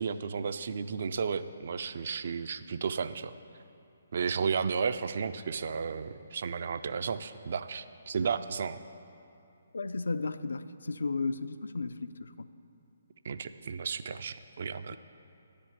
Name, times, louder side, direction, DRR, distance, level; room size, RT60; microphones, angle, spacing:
voice 1, 0.0-3.3 4.1-8.8 13.2-15.0, right 6 dB, 50° right, 12 dB, 0.3 m, -33 dB
voice 2, 9.7-12.5 14.9-15.0, left 3 dB, 60° left, 12 dB, 0.3 m, -34 dB
10.0 x 5.1 x 8.3 m, 2.6 s
figure-of-eight pair, 135°, 0 cm